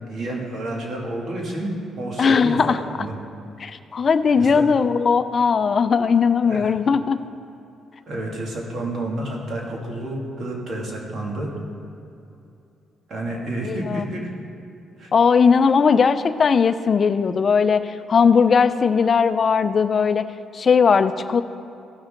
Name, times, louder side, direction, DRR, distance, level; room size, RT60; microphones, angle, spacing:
voice 1, 0.1-2.6 3.0-3.1 4.4-4.6 6.4-6.7 8.1-11.5 13.1-14.3 15.0-15.1, right 1 dB, 55° right, -2 dB, 2.4 m, -30 dB
voice 2, 2.2-2.8 3.6-7.2 13.6-14.1 15.1-20.3 20.5-21.4, left 5 dB, 45° left, 11 dB, 0.5 m, -18 dB
16.0 x 6.2 x 3.8 m, 2.7 s
cardioid pair, 90°, 0 cm